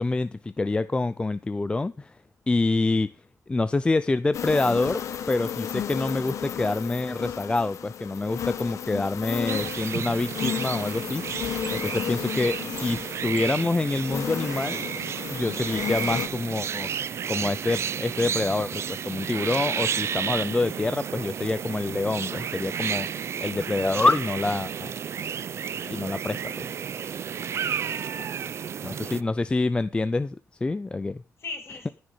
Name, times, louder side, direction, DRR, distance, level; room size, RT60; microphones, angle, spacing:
voice 1, 0.0-2.2 2.5-3.1 3.5-5.0 5.3-11.2 11.7-14.9 15.3-16.9 17.3-23.1 23.4-24.9 25.8-26.7 28.8-31.2, left 3 dB, 20° left, 0.5 m, -26 dB
sound 1, 4.3-16.3, left 9 dB, 70° left, 1.2 m, -33 dB
sound 2, 9.5-29.2, right 8 dB, 55° right, 0.6 m, -32 dB
voice 2, 27.8-28.4 28.8-29.4 31.4-31.9, left 4 dB, 50° left, 7.5 m, -42 dB
14.0 x 6.3 x 7.6 m
cardioid pair, 125°, 6 cm